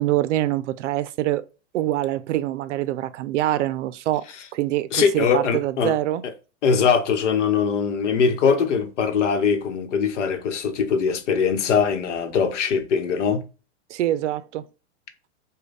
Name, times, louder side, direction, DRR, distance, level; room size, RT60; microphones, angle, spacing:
voice 1, 0.0-1.4 1.7-4.2 4.5-6.2 13.9-14.6, right 14 dB, 80° right, 0.5 m, -24 dB
voice 2, 4.9-5.9 6.6-13.5, left 6 dB, 85° left, 0.9 m, -21 dB
5.1 x 2.2 x 3.8 m
supercardioid pair, 140°, 35 cm